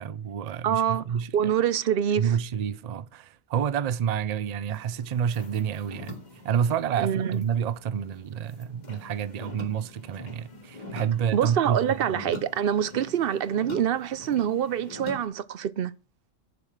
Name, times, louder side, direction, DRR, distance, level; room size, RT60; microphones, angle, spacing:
voice 1, 0.0-1.3 2.2-6.2 6.4-12.2, right 8 dB, 90° right, 0.3 m, -29 dB
voice 2, 0.6-1.0 1.3-2.3 7.0-7.4 11.3-15.9, right 9 dB, 60° right, 0.7 m, -25 dB
sound 1, 4.7-15.3, left 2 dB, 35° left, 2.2 m, -44 dB
10.5 x 4.9 x 5.7 m
omnidirectional pair, 1.3 m